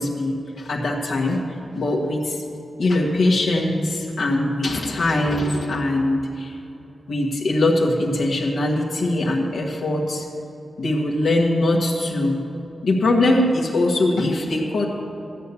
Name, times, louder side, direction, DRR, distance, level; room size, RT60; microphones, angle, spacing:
voice 1, 0.0-1.4 1.7-2.4 2.8-6.5 7.1-10.3 10.8-12.4 12.8-14.9, left 2 dB, 65° left, -1 dB, 1.3 m, -21 dB
13.5 x 8.3 x 6.9 m, 2.9 s
wide cardioid pair, 155°, 0 cm